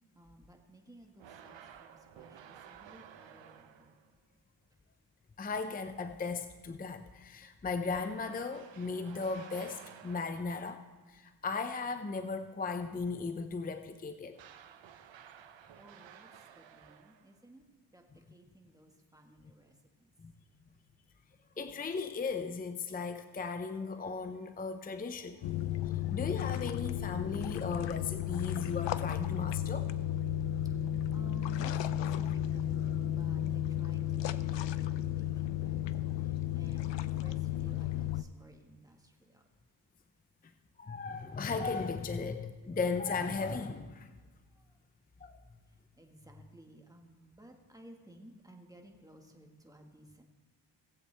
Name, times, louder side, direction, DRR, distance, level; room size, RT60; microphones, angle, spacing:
voice 1, 0.1-4.0 15.8-17.6 17.9-19.7 20.0-20.1 30.3-39.4 44.5-44.8 45.7-50.2, equal, 10° right, 2 dB, 1.6 m, -57 dB
sound 1, 1.2-4.2 7.9-10.8 14.3-17.4, right 9 dB, 80° right, 0.8 m, -54 dB
voice 2, 5.4-14.4 20.2-20.3 21.6-25.4 25.9-29.9 40.8-44.1 45.2-45.4, left 4 dB, 20° left, 9 dB, 0.5 m, -36 dB
sound 2, 25.4-38.2, left 11 dB, 75° left, 0.5 m, -33 dB
18.0 x 7.8 x 3.3 m, 1.3 s
cardioid pair, 65°, 44 cm